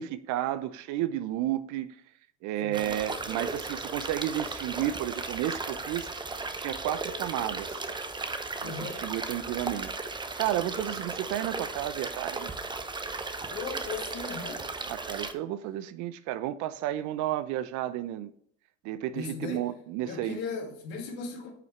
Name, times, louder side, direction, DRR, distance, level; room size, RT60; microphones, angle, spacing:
voice 1, 0.0-1.9 2.4-6.1 6.6-7.8 8.6-12.5 14.9-18.3 18.8-20.4, right 13 dB, 55° right, 0.6 m, -32 dB
voice 2, 2.6-3.6 8.6-9.1 13.5-14.6 19.1-19.7 20.1-21.5, left 4 dB, 70° left, 2.4 m, -38 dB
sound 1, 2.7-15.3, right 3 dB, 15° right, 0.8 m, -36 dB
9.1 x 5.6 x 3.2 m
supercardioid pair, 90°, 35 cm